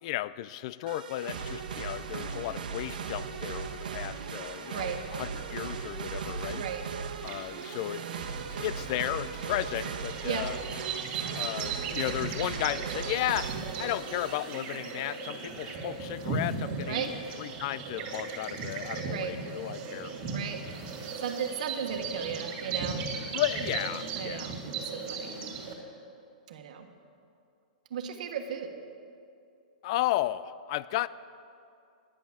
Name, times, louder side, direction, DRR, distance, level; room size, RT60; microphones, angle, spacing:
voice 1, 0.0-6.6 7.2-8.0 8.5-10.6 11.3-17.1 17.4-20.1 23.3-24.5 29.8-31.1, left 15 dB, 45° left, 18 dB, 0.3 m, -34 dB
sound 1, 0.9-14.6, right 6 dB, 80° right, 1.1 m, -38 dB
voice 2, 6.5-6.8 10.2-10.5 16.9-17.1 19.1-19.4 20.3-20.6 21.2-23.0 24.2-24.6 24.9-25.4 26.5-26.9 27.9-28.7, right 8 dB, 60° right, 5 dB, 1.4 m, -35 dB
sound 2, 7.2-25.8, right 4 dB, 35° right, 2.4 m, -37 dB
10.5 x 10.0 x 7.2 m, 2.5 s
hypercardioid pair, 155°, 5 cm